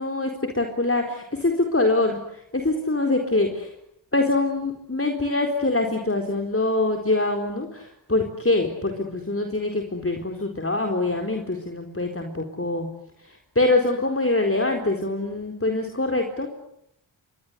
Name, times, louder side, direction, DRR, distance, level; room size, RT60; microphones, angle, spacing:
voice 1, 0.0-3.7 4.1-12.9 13.2-16.5, left 2 dB, 30° left, 3 dB, 4.3 m, -24 dB
29.0 x 23.5 x 8.3 m, 0.77 s
wide cardioid pair, 55°, 47 cm